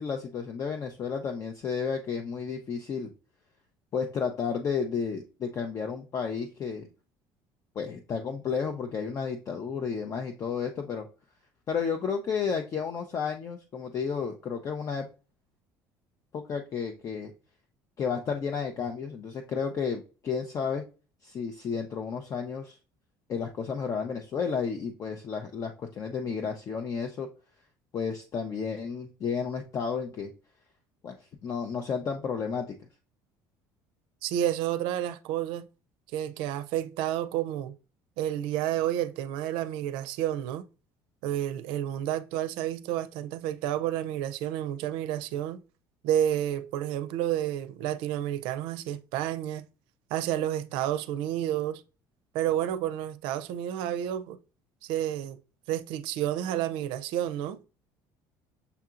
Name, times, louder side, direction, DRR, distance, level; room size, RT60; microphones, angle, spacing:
voice 1, 0.0-3.1 3.9-6.9 7.8-11.1 11.7-15.1 16.3-17.3 18.0-20.8 21.2-22.8 23.3-27.3 27.9-30.3 31.0-31.2 31.4-32.7, left 6 dB, 40° left, 0.6 m, -32 dB
voice 2, 34.2-35.7 36.1-37.7 38.2-40.6 41.2-45.6 46.0-49.6 50.1-51.8 52.3-54.4 54.8-55.4 55.7-57.6, right 11 dB, 80° right, 0.4 m, -30 dB
6.8 x 2.8 x 2.4 m
cardioid pair, 125°, 9 cm